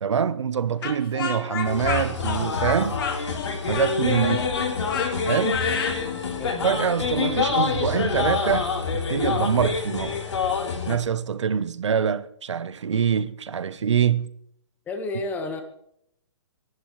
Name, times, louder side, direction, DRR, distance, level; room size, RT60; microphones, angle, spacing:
voice 1, 0.0-3.0 3.7-4.4 5.2-5.6 6.6-10.2 10.9-14.3, right 7 dB, 85° right, 0.9 m, -24 dB
Speech, 0.8-6.0, left 6 dB, 50° left, 2.3 m, -31 dB
sound 1, 1.6-11.0, left 5 dB, 80° left, 3.3 m, -26 dB
voice 2, 14.9-15.6, left 2 dB, 10° left, 1.4 m, -31 dB
24.5 x 11.0 x 3.2 m
hypercardioid pair, 160°, 15 cm